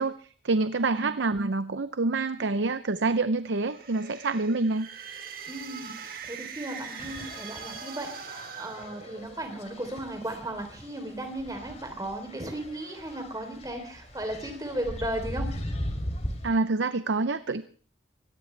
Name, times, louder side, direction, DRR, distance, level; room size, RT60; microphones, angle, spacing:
voice 1, 0.0-4.9 16.4-17.6, right 3 dB, 80° right, 12 dB, 0.7 m, -27 dB
sound 1, 3.5-9.6, right 6 dB, 50° right, 2.2 m, -42 dB
voice 2, 5.5-15.5, right 1 dB, 20° right, 5 dB, 3.5 m, -36 dB
sound 2, 7.0-16.5, equal, 35° left, 3.2 m, -39 dB
24.0 x 18.0 x 3.4 m, 0.44 s
head